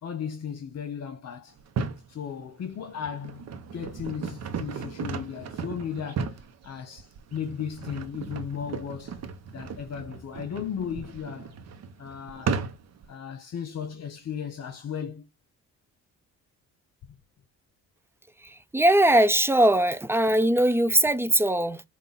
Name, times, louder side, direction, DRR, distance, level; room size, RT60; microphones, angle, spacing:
voice 1, 0.0-1.6 2.1-9.2 9.5-11.5 12.0-12.5 13.1-15.2 17.1-17.2, left 7 dB, 60° left, 1.1 m, -36 dB
sound 1, 1.6-2.1 2.7-13.1, right 5 dB, 60° right, 0.8 m, -35 dB
voice 2, 18.7-21.8, right 1 dB, 10° right, 0.3 m, -20 dB
5.4 x 2.4 x 4.0 m
cardioid pair, 90°, 30 cm